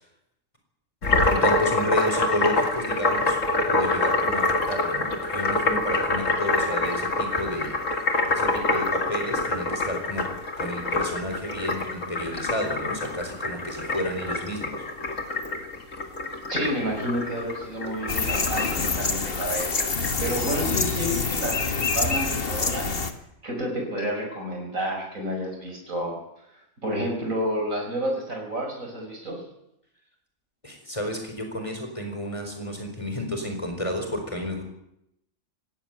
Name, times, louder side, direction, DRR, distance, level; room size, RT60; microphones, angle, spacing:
sound 1, 1.0-20.1, left 2 dB, 70° left, 2.8 m, -26 dB
voice 1, 1.2-3.4 3.7-7.8 8.3-10.3 10.6-14.7 30.6-34.6, equal, 25° left, 4 dB, 4.8 m, -31 dB
voice 2, 16.5-19.7 20.2-22.9 23.4-26.1 26.8-29.4, equal, 80° right, 1 dB, 6.1 m, -30 dB
sound 2, 18.1-23.1, left 4 dB, 45° left, 1.8 m, -26 dB
18.5 x 16.5 x 9.3 m, 0.80 s
omnidirectional pair, 1.4 m